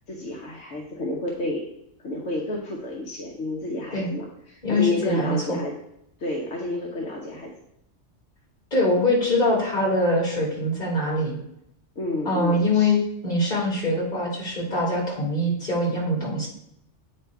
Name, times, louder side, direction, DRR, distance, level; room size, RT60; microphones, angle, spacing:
voice 1, 0.1-1.6 2.0-5.7 6.2-7.5 12.0-12.9, left 1 dB, 75° left, -2 dB, 1.3 m, -30 dB
voice 2, 4.6-5.6 8.7-11.4 12.2-16.5, left 1 dB, 40° left, -4 dB, 2.5 m, -23 dB
8.4 x 3.3 x 4.6 m, 0.76 s
omnidirectional pair, 1.3 m